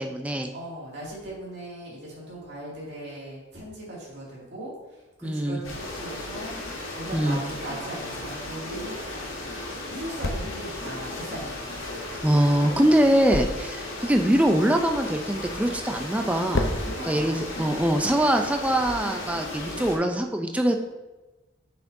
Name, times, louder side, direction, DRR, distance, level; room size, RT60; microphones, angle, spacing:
voice 1, 0.0-0.5 5.2-5.6 7.1-7.4 12.2-16.7 17.0-20.8, right 1 dB, 5° right, 4 dB, 0.4 m, -23 dB
voice 2, 0.5-6.5 6.9-9.0 9.9-12.2 13.0-13.3 16.8-18.0, right 1 dB, 55° right, -5 dB, 2.4 m, -39 dB
sound 1, 5.6-20.0, left 2 dB, 75° left, 2.0 m, -36 dB
sound 2, 10.1-19.2, left 2 dB, 60° left, 0.6 m, -37 dB
8.2 x 6.0 x 2.6 m, 1.1 s
head